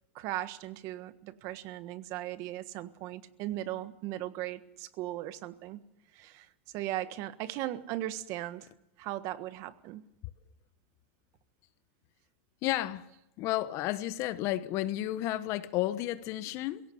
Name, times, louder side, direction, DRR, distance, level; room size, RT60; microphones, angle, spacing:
voice 1, 0.1-5.8 6.1-6.5 6.7-8.7 9.0-10.1, right 14 dB, 50° right, 1.4 m, -38 dB
voice 2, 12.6-13.1 13.4-16.8, left 15 dB, 45° left, 1.1 m, -32 dB
21.0 x 17.5 x 7.9 m
supercardioid pair, 130°, 7 cm